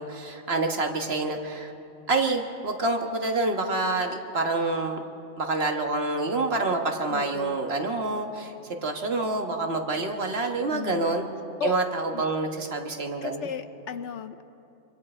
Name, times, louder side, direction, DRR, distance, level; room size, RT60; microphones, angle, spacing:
voice 1, 0.0-1.7 2.1-5.0 5.4-8.5 8.8-11.2 11.6-13.5, right 3 dB, 50° right, 4 dB, 1.6 m, -27 dB
voice 2, 7.1-7.6 10.7-11.1 11.6-11.8 12.1-12.2 13.2-14.4, left 7 dB, 65° left, 10 dB, 1.0 m, -34 dB
26.5 x 23.0 x 4.4 m, 2.7 s
omnidirectional pair, 1.4 m